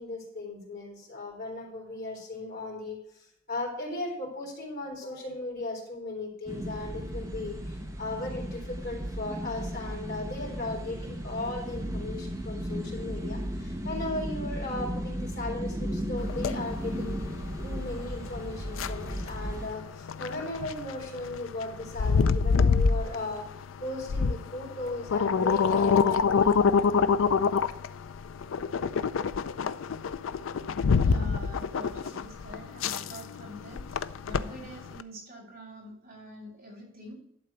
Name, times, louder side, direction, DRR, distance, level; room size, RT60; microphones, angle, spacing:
voice 1, 0.0-17.4 17.6-27.0, left 2 dB, 50° left, -3 dB, 3.4 m, -37 dB
sound 1, 6.5-19.7, equal, 15° right, 1.3 m, -35 dB
sound 2, 16.2-35.0, left 5 dB, 65° left, 0.4 m, -27 dB
voice 2, 30.9-37.2, equal, 50° right, -4 dB, 4.1 m, -45 dB
11.5 x 3.9 x 7.9 m, 0.76 s
head